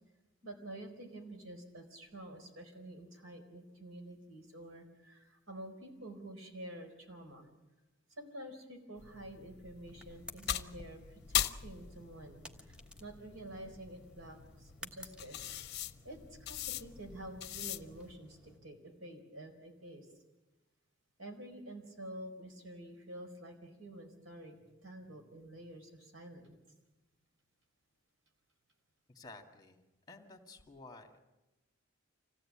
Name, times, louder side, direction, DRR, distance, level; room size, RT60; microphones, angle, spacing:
voice 1, 0.4-7.5 8.1-15.4 16.0-20.1 21.2-24.6 24.8-26.5, right 1 dB, 90° right, 4 dB, 4.5 m, -49 dB
sound 1, 9.0-18.1, left 11 dB, 55° left, 0.7 m, -41 dB
sound 2, 9.8-18.6, left 1 dB, 5° right, 1.3 m, -56 dB
voice 2, 29.1-29.8 30.1-31.2, left 3 dB, 20° left, 4 dB, 2.0 m, -53 dB
26.0 x 16.5 x 8.7 m, 1.1 s
head